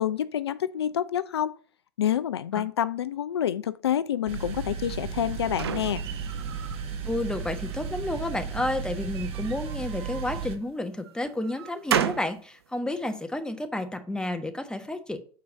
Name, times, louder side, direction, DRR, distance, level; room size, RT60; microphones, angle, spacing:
voice 1, 0.0-1.6 2.0-6.0, left 10 dB, 80° left, 0.4 m, -28 dB
sound 1, 4.3-10.6, right 6 dB, 45° right, 1.4 m, -34 dB
sound 2, 4.9-6.8 7.3-8.0 9.0-10.5 11.1-12.4, right 9 dB, 80° right, 0.5 m, -33 dB
voice 2, 7.1-15.2, left 1 dB, 5° left, 1.2 m, -31 dB
7.2 x 4.6 x 5.1 m
hypercardioid pair, 80°, 13 cm